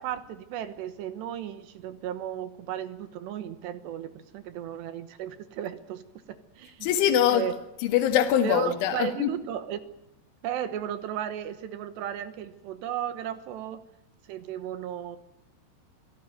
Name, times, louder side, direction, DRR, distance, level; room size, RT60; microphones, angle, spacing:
voice 1, 0.0-6.0 6.3-6.9 7.3-7.5 8.4-9.9 10.4-13.8 14.3-15.2, right 10 dB, 70° right, 12 dB, 2.8 m, -35 dB
voice 2, 6.8-7.5 7.8-9.3, left 10 dB, 70° left, 4 dB, 4.0 m, -23 dB
25.0 x 16.5 x 9.2 m, 0.89 s
omnidirectional pair, 5.9 m